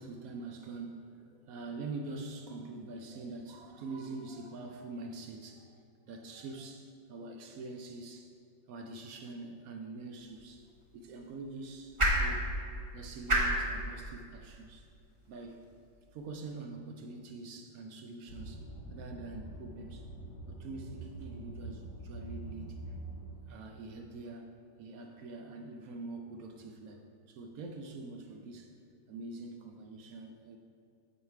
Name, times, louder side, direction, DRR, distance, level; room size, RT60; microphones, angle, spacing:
voice 1, 0.0-8.3 8.7-14.9 15.3-15.6 16.1-20.1 20.5-22.9 23.5-24.5 24.8-28.7 29.1-30.6, right 3 dB, 75° right, 3 dB, 0.8 m, -45 dB
sound 1, 10.2-16.4, right 1 dB, 30° right, 0.6 m, -35 dB
sound 2, 18.3-23.4, right 2 dB, 85° left, 2.1 m, -45 dB
8.1 x 5.0 x 4.5 m, 2.4 s
omnidirectional pair, 2.0 m